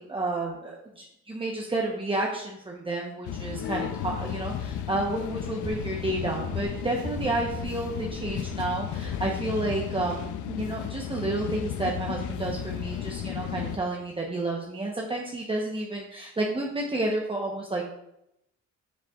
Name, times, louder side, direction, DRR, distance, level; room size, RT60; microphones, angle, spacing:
voice 1, 0.0-17.8, right 2 dB, 15° right, -2 dB, 1.1 m, -30 dB
sound 1, 3.2-13.8, left 10 dB, 75° left, 0.6 m, -34 dB
sound 2, 5.6-9.6 9.9-10.1, left 1 dB, 10° left, 1.9 m, -40 dB
7.9 x 7.2 x 2.5 m, 0.82 s
cardioid pair, 90°, 30 cm